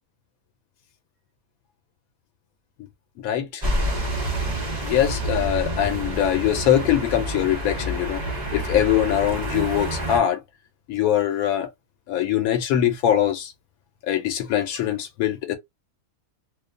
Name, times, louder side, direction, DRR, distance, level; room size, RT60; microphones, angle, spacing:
voice 1, 3.2-3.6 4.8-8.2 8.5-10.4 10.9-11.7 12.1-13.5 14.1-15.6, left 11 dB, 85° left, 1.0 m, -22 dB
sound 1, 3.6-10.2, right 1 dB, 40° right, 0.7 m, -28 dB
2.6 x 2.1 x 2.4 m
omnidirectional pair, 1.5 m